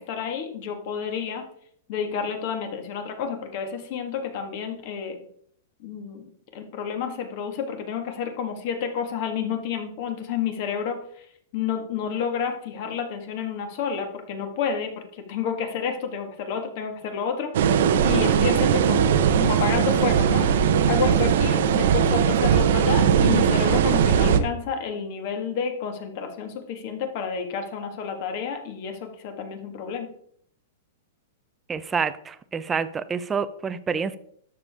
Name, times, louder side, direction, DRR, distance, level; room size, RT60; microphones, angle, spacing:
voice 1, 0.0-1.4 1.9-5.2 5.8-11.0 11.5-20.5 20.9-30.1, left 7 dB, 45° left, 6 dB, 1.7 m, -30 dB
sound 1, 17.5-24.4, right 8 dB, 65° right, 0.8 m, -19 dB
voice 2, 31.7-34.2, right 6 dB, 15° right, 13 dB, 0.5 m, -28 dB
12.0 x 6.9 x 3.6 m, 0.65 s
supercardioid pair, 160°, 0 cm